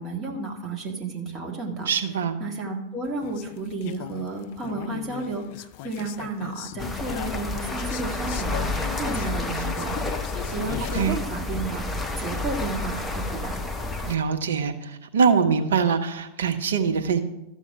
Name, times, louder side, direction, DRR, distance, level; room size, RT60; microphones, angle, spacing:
voice 1, 0.0-1.9 2.4-8.7 9.0-11.8 12.2-13.6, right 3 dB, 25° right, 1 dB, 1.8 m, -32 dB
voice 2, 1.9-2.4 10.9-11.2 14.0-17.2, right 6 dB, 65° right, 6 dB, 0.9 m, -23 dB
sound 1, 3.0-11.1, left 13 dB, 45° left, 0.3 m, -38 dB
sound 2, 6.8-14.1, left 2 dB, 10° left, 1.0 m, -30 dB
13.0 x 6.9 x 4.8 m, 0.90 s
figure-of-eight pair, 90°, 0 cm